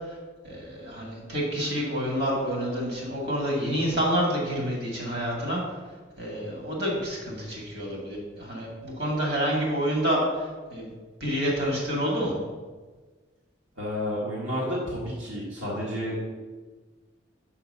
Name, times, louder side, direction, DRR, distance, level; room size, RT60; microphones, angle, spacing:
voice 1, 0.4-5.6 6.2-10.9 11.2-12.3, equal, 60° right, -2 dB, 2.3 m, -28 dB
voice 2, 13.8-16.2, equal, 80° right, -5 dB, 1.7 m, -31 dB
5.7 x 5.4 x 6.7 m, 1.4 s
head